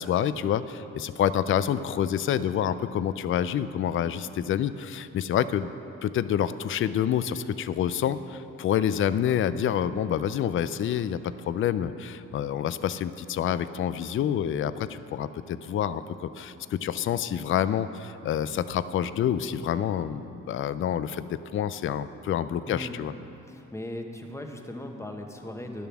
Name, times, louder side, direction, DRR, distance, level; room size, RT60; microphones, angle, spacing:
voice 1, 0.0-5.7 6.0-23.1, left 9 dB, 45° left, 14 dB, 0.4 m, -28 dB
voice 2, 23.5-25.9, left 1 dB, 10° left, 3 dB, 1.0 m, -38 dB
11.0 x 7.0 x 6.0 m, 3.0 s
cardioid pair, 90°, 30 cm